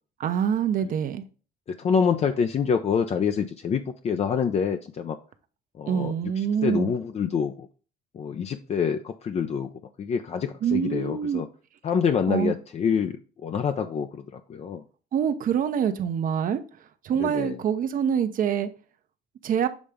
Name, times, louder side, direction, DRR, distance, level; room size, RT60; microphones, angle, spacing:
voice 1, 0.2-1.2 5.9-6.9 10.6-11.4 12.3-12.5 15.1-16.6 17.0-18.7 19.4-19.7, right 8 dB, 55° right, 0.8 m, -25 dB
voice 2, 1.7-5.2 5.8-7.7 8.1-9.7 10.0-11.5 11.8-13.2 13.4-14.8 17.2-17.6, left 6 dB, 40° left, 0.6 m, -26 dB
7.2 x 3.4 x 5.0 m
cardioid pair, 110°, 17 cm